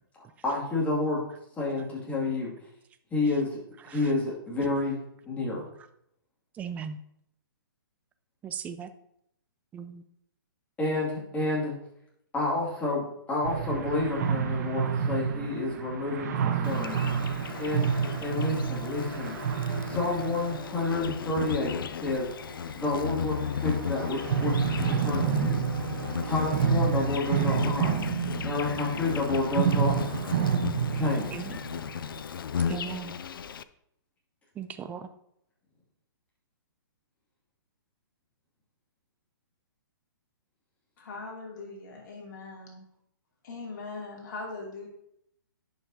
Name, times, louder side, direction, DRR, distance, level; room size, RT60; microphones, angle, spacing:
voice 1, 0.4-1.2 1.6-2.5 3.1-3.6 3.9-5.0 5.2-5.6 10.8-11.7 12.3-17.0 17.6-17.9 18.2-19.4 19.9-22.3 22.8-25.7 26.2-27.9 28.4-29.9 30.9-31.4, left 2 dB, 10° left, -5 dB, 2.3 m, -29 dB
voice 2, 6.6-7.0 8.4-8.9 9.7-10.0 31.3-31.6 32.7-33.1 34.6-35.1, right 7 dB, 15° right, 10 dB, 0.4 m, -37 dB
sound 1, 13.4-21.6 23.4-32.2, right 7 dB, 50° right, 0.8 m, -29 dB
Insect, 16.6-33.6, left 7 dB, 75° left, 0.4 m, -35 dB
sound 2, 16.6-30.2, right 3 dB, 85° right, 1.4 m, -46 dB
voice 3, 41.0-42.8 43.4-44.9, left 3 dB, 55° left, -1 dB, 2.7 m, -40 dB
11.0 x 5.5 x 2.8 m, 0.75 s
hypercardioid pair, 140°, 12 cm